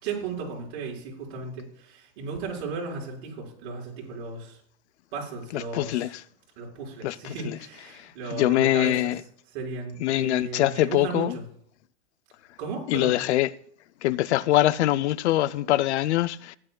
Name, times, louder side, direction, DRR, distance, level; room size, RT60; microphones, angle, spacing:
voice 1, 0.0-4.6 5.1-6.2 6.6-9.2 9.5-11.4 12.6-13.2, right 4 dB, 50° right, 5.2 m, -35 dB
voice 2, 5.5-6.1 7.0-7.1 8.3-9.2 10.0-11.3 12.9-13.5 14.0-16.6, left 15 dB, 85° left, 0.6 m, -23 dB
16.5 x 10.5 x 2.3 m
supercardioid pair, 155°, 33 cm